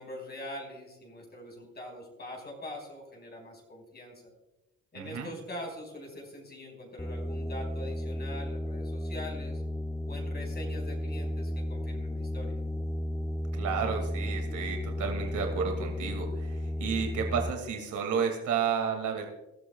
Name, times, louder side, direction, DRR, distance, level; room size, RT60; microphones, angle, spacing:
voice 1, 0.0-4.2 4.9-9.6 10.1-12.6, left 1 dB, 35° left, 0 dB, 5.1 m, -43 dB
voice 2, 4.9-5.3 13.5-19.3, right 6 dB, 75° right, 3 dB, 2.3 m, -32 dB
sound 1, 7.0-17.5, left 1 dB, 10° left, 0.6 m, -34 dB
23.0 x 13.0 x 2.3 m, 0.99 s
cardioid pair, 90°, 30 cm